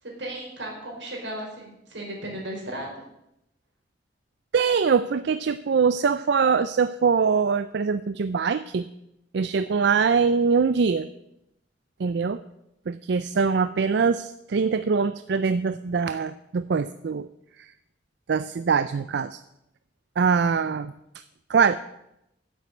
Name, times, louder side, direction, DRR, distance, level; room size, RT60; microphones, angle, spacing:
voice 1, 0.0-2.9, right 1 dB, 90° right, -1 dB, 4.6 m, -35 dB
voice 2, 4.5-8.9 9.3-11.1 12.0-12.4 12.9-17.3 18.3-19.4 20.2-20.9 21.5-21.7, right 5 dB, 70° right, 13 dB, 0.4 m, -23 dB
9.4 x 7.7 x 8.4 m, 0.84 s
head